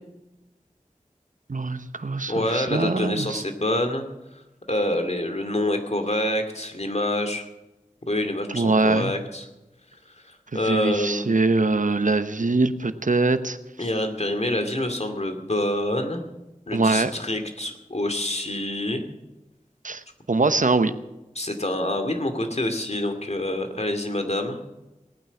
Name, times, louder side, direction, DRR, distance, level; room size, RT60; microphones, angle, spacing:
voice 1, 1.5-3.4 8.5-9.1 10.6-13.6 16.7-17.1 19.8-20.0 20.3-20.9, right 3 dB, 70° right, 11 dB, 1.0 m, -22 dB
voice 2, 2.3-4.0 4.7-7.5 8.1-9.5 10.1-11.2 13.8-16.2 16.7-19.0 21.4-24.6, left 1 dB, 50° left, 5 dB, 2.4 m, -26 dB
18.5 x 9.3 x 7.1 m, 1.0 s
wide cardioid pair, 40°, 14 cm